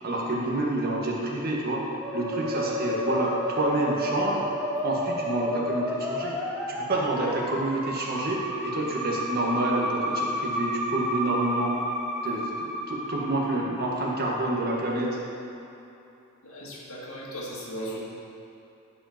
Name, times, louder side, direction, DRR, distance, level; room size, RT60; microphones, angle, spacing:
voice 1, 0.0-1.8 2.1-4.4 4.8-6.4 6.7-11.8 12.2-15.2, right 1 dB, 45° right, -2 dB, 1.4 m, -28 dB
Musical instrument, 2.0-13.8, equal, ahead, 0.8 m, -31 dB
voice 2, 16.4-18.0, equal, 80° left, -5 dB, 2.0 m, -37 dB
10.5 x 4.9 x 5.8 m, 2.8 s
head